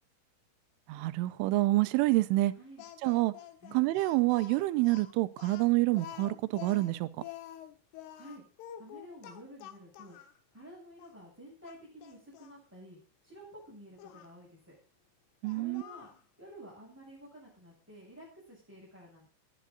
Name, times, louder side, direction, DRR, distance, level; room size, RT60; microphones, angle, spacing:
voice 1, 0.9-2.5 3.0-3.3 3.7-7.1 15.4-15.8, right 19 dB, 85° right, 3.4 m, -27 dB
voice 2, 2.5-2.8 3.6-3.8 8.2-8.4 8.8-10.2 10.5-14.7 15.5-16.1 16.4-19.3, equal, 5° right, 7.6 m, -51 dB
Speech, 2.8-10.4 11.0-11.1 11.6-12.6 14.0-14.3 15.4-16.2, left 11 dB, 85° left, 4.1 m, -48 dB
19.5 x 11.5 x 4.0 m
omnidirectional pair, 5.6 m